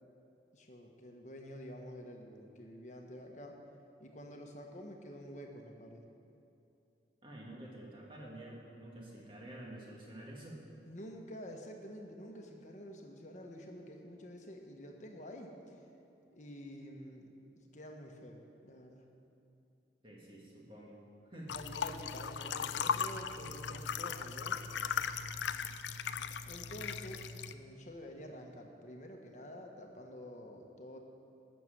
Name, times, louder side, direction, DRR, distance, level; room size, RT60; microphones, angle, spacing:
voice 1, 0.5-3.6 4.0-6.0 10.9-15.5 16.3-17.3 17.6-19.1 21.5-24.6 26.4-31.0, equal, 40° left, 2 dB, 1.3 m, -49 dB
voice 2, 7.2-10.6 20.0-21.0 21.3-21.5, right 1 dB, 30° right, -3 dB, 2.0 m, -49 dB
sound 1, 21.5-27.5, left 7 dB, 85° left, 0.5 m, -38 dB
12.5 x 6.9 x 7.8 m, 2.8 s
head